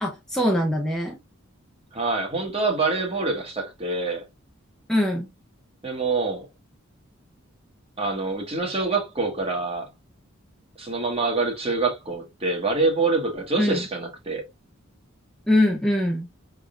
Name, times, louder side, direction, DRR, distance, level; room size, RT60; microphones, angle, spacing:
voice 1, 0.0-1.2 4.9-5.3 13.6-13.9 15.5-16.3, left 1 dB, 5° left, 0.6 m, -22 dB
voice 2, 1.9-4.2 5.8-6.5 8.0-9.9 10.8-14.4, right 3 dB, 30° right, 1.3 m, -25 dB
5.5 x 3.6 x 2.5 m
head